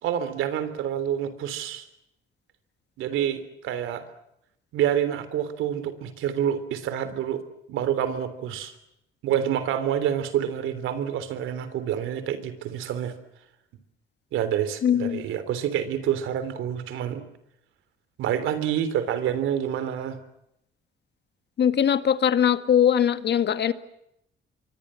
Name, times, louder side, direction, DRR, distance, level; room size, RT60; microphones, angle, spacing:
voice 1, 0.0-1.8 3.0-4.0 4.7-7.4 7.7-8.7 9.2-13.1 14.3-17.2 18.2-20.2, right 10 dB, 90° right, 12 dB, 3.4 m, -27 dB
voice 2, 14.8-15.2 21.6-23.7, left 9 dB, 60° left, 11 dB, 1.9 m, -21 dB
27.0 x 23.5 x 7.7 m, 0.80 s
cardioid pair, 90°, 20 cm